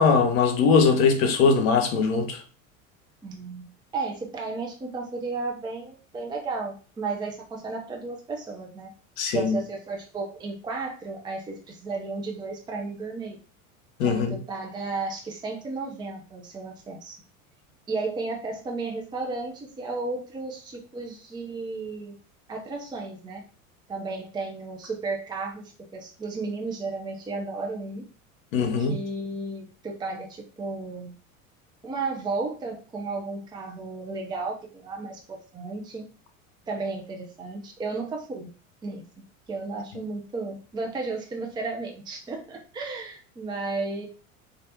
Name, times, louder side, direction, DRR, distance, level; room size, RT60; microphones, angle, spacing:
voice 1, 0.0-2.4 9.2-9.6 14.0-14.4 28.5-29.0, left 5 dB, 65° left, 0.8 m, -21 dB
voice 2, 3.2-3.7 3.9-8.9 9.3-13.4 14.0-17.2 17.9-22.1 22.5-23.4 23.9-25.6 25.9-28.0 28.8-31.1 31.8-36.0 36.7-38.5 38.8-39.0 39.5-44.1, right 3 dB, 10° right, 0.5 m, -33 dB
3.3 x 2.5 x 2.7 m
hypercardioid pair, 80°, 42 cm